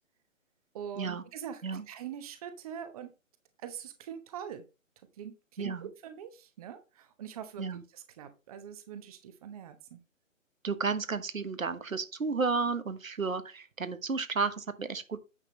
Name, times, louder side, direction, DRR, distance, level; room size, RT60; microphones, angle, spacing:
voice 1, 0.7-3.1 3.6-4.6 5.2-7.6 7.9-10.0, right 9 dB, 30° right, 1.1 m, -43 dB
voice 2, 5.6-5.9 7.6-7.8 10.6-15.2, right 4 dB, 85° right, 1.4 m, -32 dB
9.7 x 6.6 x 3.1 m
figure-of-eight pair, 140°, 40 cm